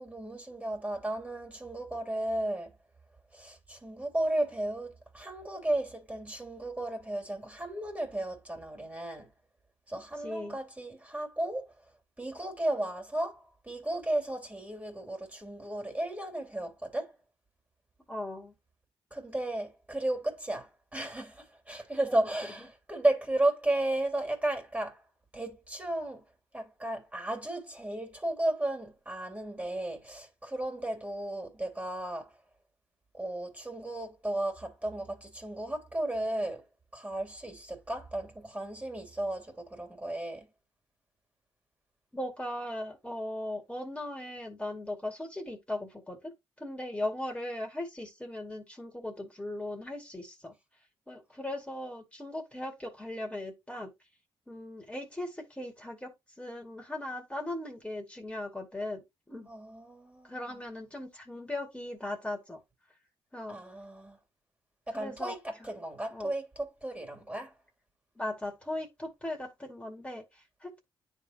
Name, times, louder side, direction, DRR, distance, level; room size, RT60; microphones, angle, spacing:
voice 1, 0.0-2.7 3.3-9.3 9.9-11.7 12.2-17.1 19.1-25.0 25.3-26.3 26.5-32.3 33.1-36.6 36.9-40.5 59.5-60.6 63.5-64.2 64.9-67.5, right 1 dB, 15° right, 2.8 m, -34 dB
voice 2, 10.2-10.6 18.1-18.5 22.1-22.2 42.1-46.3 46.6-50.5 51.1-53.9 54.5-56.1 56.4-59.5 60.3-62.6 63.3-63.6 64.9-65.3 66.1-66.3 68.2-70.8, left 1 dB, 10° left, 2.2 m, -38 dB
10.0 x 3.7 x 2.9 m
supercardioid pair, 55°, 10 cm